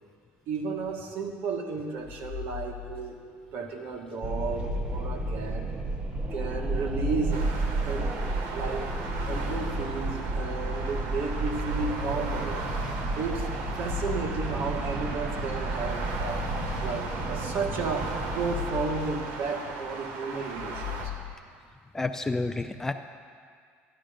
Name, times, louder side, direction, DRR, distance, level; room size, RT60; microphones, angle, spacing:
voice 1, 0.5-3.2 3.5-5.7 6.3-7.4 7.8-8.1 8.5-8.9 9.3-12.6 13.1-13.5 13.8-16.4 16.8-21.1, right 4 dB, 55° right, 2 dB, 1.6 m, -33 dB
sound 1, 2.0-3.5 4.3-6.0 6.6-8.4 9.0-10.5 11.2-13.0 13.5-15.2 15.9-17.6 18.1-19.9 20.5-21.3, left 14 dB, 75° left, 1.1 m, -39 dB
Wind, 4.2-19.6, right 2 dB, 20° right, 0.9 m, -32 dB
sound 2, 7.3-21.0, right 3 dB, 80° right, 1.6 m, -37 dB
voice 2, 21.9-22.9, left 3 dB, 10° left, 8 dB, 0.3 m, -29 dB
13.0 x 11.0 x 5.1 m, 2.1 s
cardioid pair, 155°, 4 cm